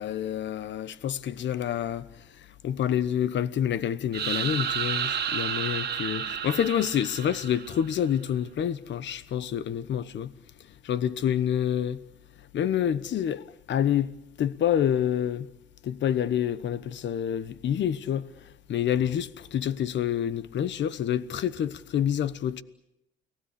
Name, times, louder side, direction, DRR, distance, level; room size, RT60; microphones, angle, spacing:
voice 1, 0.0-2.1 2.4-10.3 10.8-12.0 12.5-15.5 15.8-22.6, left 9 dB, 65° left, 1.1 m, -28 dB
sound 1, 4.1-8.0, right 8 dB, 55° right, 2.0 m, -31 dB
30.0 x 19.0 x 8.3 m
cardioid pair, 90°, 20 cm